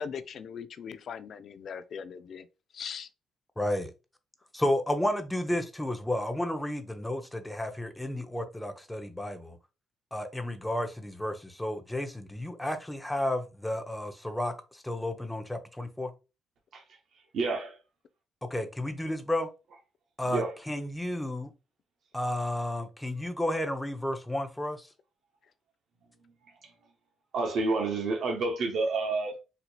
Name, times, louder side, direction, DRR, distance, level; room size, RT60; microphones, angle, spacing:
voice 1, 0.0-2.5 2.7-3.1, left 6 dB, 60° left, 0.4 m, -39 dB
voice 2, 3.6-3.9 4.5-9.6 10.1-14.5 14.8-16.1 18.5-19.5 20.2-20.4 20.7-21.5 22.1-24.9, left 1 dB, 5° left, 0.6 m, -32 dB
voice 3, 16.7-17.8 20.2-20.6 26.2-26.7 27.3-29.4, right 3 dB, 65° right, 0.7 m, -30 dB
4.3 x 2.7 x 2.3 m
cardioid pair, 90°, 0 cm